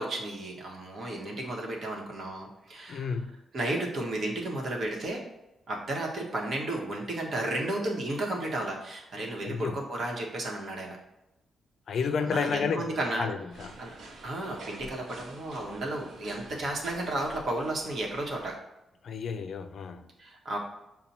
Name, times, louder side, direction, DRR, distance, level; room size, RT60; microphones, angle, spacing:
voice 1, 0.0-3.2 3.5-5.2 5.7-11.0 11.9-13.3 13.8-13.9 14.2-18.5 20.2-20.6, right 1 dB, 60° right, 1.0 m, -33 dB
voice 2, 2.9-3.3 9.4-9.8 11.9-13.7 19.0-20.1, left 6 dB, 65° left, 0.3 m, -31 dB
sound 1, 13.5-18.6, right 2 dB, 75° right, 0.7 m, -48 dB
5.6 x 2.2 x 4.1 m
cardioid pair, 85°, 0 cm